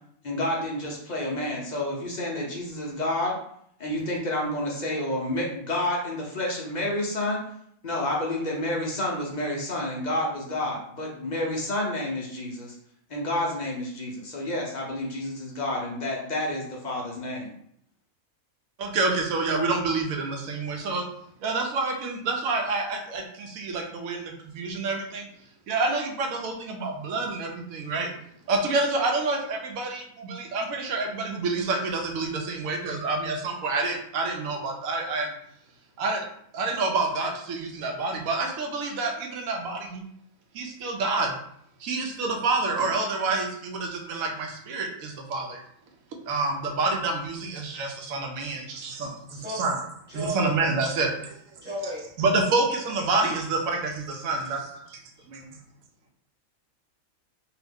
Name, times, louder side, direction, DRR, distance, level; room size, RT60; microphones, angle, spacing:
voice 1, 0.2-3.4 3.8-7.4 7.8-12.7 13.1-17.5, left 1 dB, 50° left, -2 dB, 0.5 m, -29 dB
voice 2, 18.8-21.1 21.4-25.3 25.7-28.1 28.5-35.3 36.0-36.2 36.5-40.1 40.5-41.4 41.8-45.6 46.3-49.7 50.1-51.3 52.2-55.0 55.3-55.5, right 3 dB, 80° right, 2 dB, 1.0 m, -28 dB
voice 3, 47.6-49.8 50.1-50.8 51.6-52.1 52.7-52.8 53.2-53.4 54.4-54.8, equal, 10° right, -8 dB, 1.2 m, -37 dB
2.8 x 2.3 x 3.4 m, 0.68 s
omnidirectional pair, 1.5 m